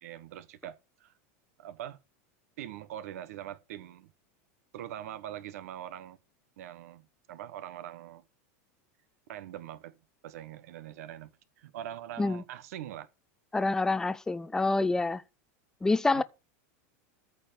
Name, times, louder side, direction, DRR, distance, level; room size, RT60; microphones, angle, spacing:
voice 1, 0.0-1.1 1.6-2.0 2.6-4.1 4.7-6.2 6.6-8.2 9.3-10.0 10.2-11.3 11.6-13.1 16.1-16.2, right 11 dB, 75° right, 1.1 m, -43 dB
voice 2, 13.5-15.2 15.8-16.2, left 3 dB, 5° left, 0.6 m, -27 dB
14.0 x 4.7 x 7.5 m
supercardioid pair, 145°, 8 cm